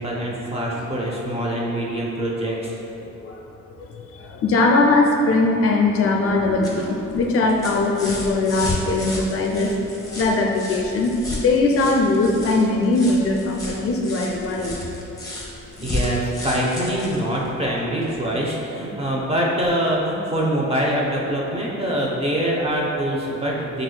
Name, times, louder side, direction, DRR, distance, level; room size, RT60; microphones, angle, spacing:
voice 1, 0.0-2.7 15.8-23.8, right 1 dB, 20° right, -3 dB, 0.8 m, -24 dB
voice 2, 3.0-3.4 3.8-9.8 10.2-14.8, left 2 dB, 50° left, 1 dB, 0.4 m, -20 dB
sound 1, 6.3-18.3 19.6-19.7, left 2 dB, 10° left, 0.9 m, -33 dB
4.8 x 3.9 x 2.3 m, 2.9 s
cardioid pair, 90°, 30 cm